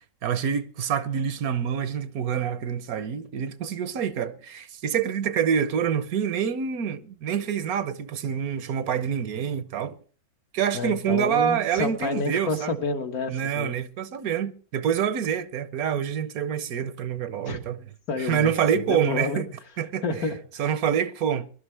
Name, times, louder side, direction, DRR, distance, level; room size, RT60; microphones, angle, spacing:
voice 1, 0.2-10.0 10.5-12.8 13.3-17.8 18.2-19.5 19.8-20.0 20.6-21.5, right 8 dB, 70° right, 1.2 m, -26 dB
voice 2, 10.7-13.8 17.5-17.6 18.1-19.4 20.0-20.7, left 3 dB, 70° left, 2.0 m, -29 dB
21.5 x 12.0 x 3.3 m
omnidirectional pair, 1.6 m